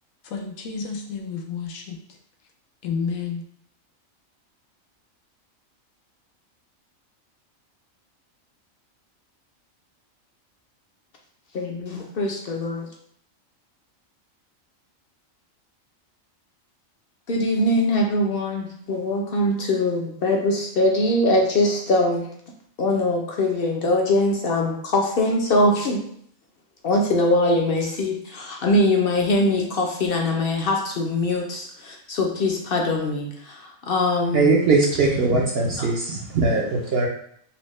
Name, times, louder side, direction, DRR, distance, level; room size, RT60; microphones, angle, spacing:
voice 1, 0.2-2.0 2.8-3.4, left 5 dB, 90° left, 1.1 m, -30 dB
voice 2, 11.5-12.9 17.3-22.3 22.8-26.0 26.8-34.6 35.8-35.9, left 1 dB, 60° left, 0.6 m, -22 dB
voice 3, 34.3-37.1, right 3 dB, 65° right, 0.6 m, -20 dB
4.1 x 2.1 x 3.0 m
omnidirectional pair, 1.4 m